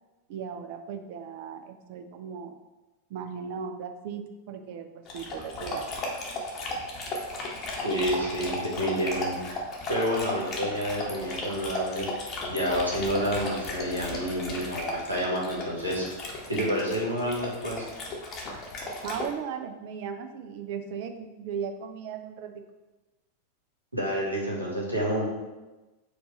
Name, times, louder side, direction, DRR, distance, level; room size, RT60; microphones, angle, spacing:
voice 1, 0.3-2.6 3.1-5.9 19.0-22.6, right 7 dB, 50° right, 6 dB, 0.4 m, -37 dB
Dog, 5.1-19.3, left 2 dB, 30° left, 0.9 m, -35 dB
voice 2, 7.8-9.3 9.9-12.1 12.5-16.1 16.5-17.8 23.9-25.3, equal, 85° right, -4 dB, 1.1 m, -29 dB
4.5 x 2.5 x 4.1 m, 1.1 s
figure-of-eight pair, 90°, 0 cm